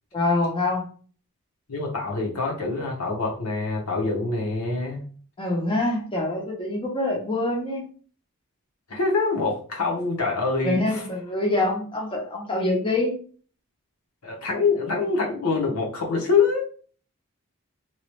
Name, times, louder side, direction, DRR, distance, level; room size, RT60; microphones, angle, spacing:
voice 1, 0.1-0.8 5.4-7.8 10.6-13.1, left 2 dB, 25° left, -2 dB, 0.7 m, -25 dB
voice 2, 1.7-5.0 8.9-11.0 14.2-16.6, left 4 dB, 80° left, -2 dB, 1.0 m, -25 dB
2.9 x 2.3 x 3.0 m, 0.42 s
head